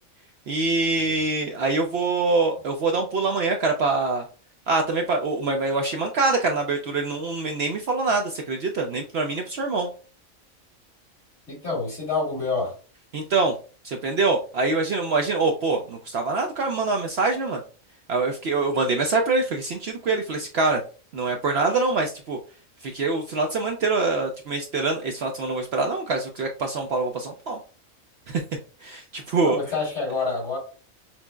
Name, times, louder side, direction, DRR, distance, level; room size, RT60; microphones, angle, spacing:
voice 1, 0.5-4.2 4.7-9.9 13.1-13.5 13.8-17.6 18.1-20.8 21.1-22.4 22.8-27.6 28.3-28.4 28.8-29.6, right 3 dB, 65° right, 3 dB, 0.7 m, -24 dB
voice 2, 11.5-12.7 29.4-30.6, left 4 dB, 55° left, -3 dB, 2.1 m, -27 dB
5.9 x 2.0 x 2.2 m, 0.37 s
omnidirectional pair, 1.4 m